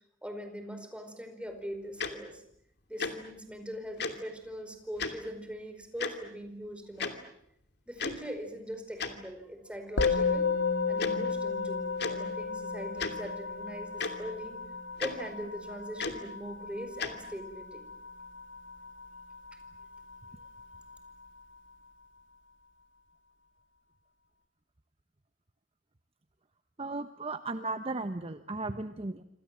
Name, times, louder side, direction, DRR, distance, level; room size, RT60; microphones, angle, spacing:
voice 1, 0.2-2.4 2.9-7.2 7.9-10.5 10.9-14.6 15.0-17.9, equal, 5° right, 6 dB, 4.8 m, -41 dB
Tick-tock, 2.0-2.1 3.0-3.1 4.0-4.1 5.0-5.1 6.0-6.1 7.0-7.1 8.0-8.2 9.0-9.1 10.0-10.1 11.0-11.1 12.0-12.1 13.0-13.1 14.0-14.1 15.0-15.1 16.0-16.2 17.0-17.1, left 5 dB, 65° left, 2.8 m, -33 dB
Musical instrument, 10.0-19.5, left 5 dB, 90° left, 2.9 m, -33 dB
voice 2, 26.8-29.2, right 2 dB, 30° right, 9 dB, 1.0 m, -35 dB
27.0 x 27.0 x 7.6 m, 0.75 s
head